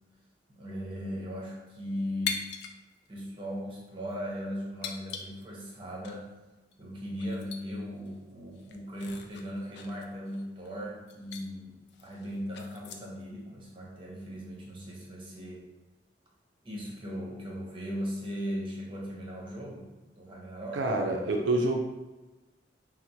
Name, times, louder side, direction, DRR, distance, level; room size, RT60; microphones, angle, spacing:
voice 1, 0.5-2.4 3.1-6.3 6.8-15.7 16.6-19.9 20.1-20.9, equal, 25° right, -3 dB, 0.7 m, -38 dB
sound 1, 2.2-2.8 3.1-3.2 3.9-4.1 4.8-5.7 6.0-6.2 6.7-6.8 7.1-7.6 8.0-8.1 8.5-10.7 11.1-11.4 11.9-13.2, left 6 dB, 60° left, 0.3 m, -40 dB
voice 2, 20.7-21.7, right 2 dB, 85° right, 2 dB, 0.4 m, -27 dB
4.3 x 2.0 x 2.7 m, 1.1 s
head